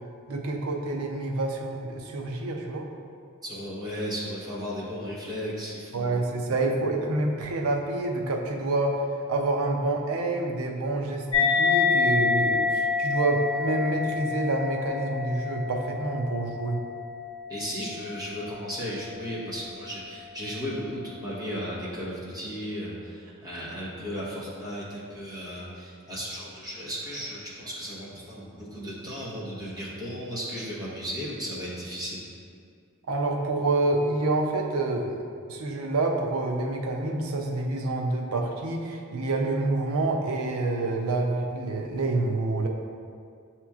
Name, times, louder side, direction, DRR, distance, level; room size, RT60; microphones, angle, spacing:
voice 1, 0.3-2.9 5.9-16.8 33.1-35.2 35.5-42.7, right 2 dB, 90° right, 2 dB, 0.5 m, -27 dB
voice 2, 3.4-6.2 17.5-32.2, equal, 20° right, -8 dB, 1.1 m, -35 dB
sound 1, 11.3-18.2, left 5 dB, 25° left, 1.1 m, -27 dB
7.6 x 2.9 x 2.4 m, 2.3 s
head